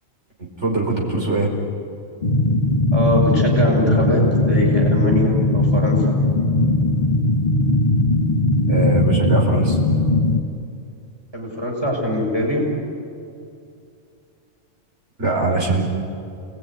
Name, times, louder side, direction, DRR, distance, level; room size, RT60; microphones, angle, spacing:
voice 1, 0.4-1.5 8.7-9.8 15.2-15.8, right 3 dB, 60° right, -2 dB, 5.3 m, -21 dB
sound 1, 2.2-10.4, left 2 dB, 45° left, 1.5 m, -18 dB
voice 2, 2.9-6.0 11.3-12.7, left 1 dB, 20° right, -2 dB, 6.1 m, -22 dB
28.5 x 20.0 x 9.9 m, 2.5 s
omnidirectional pair, 1.4 m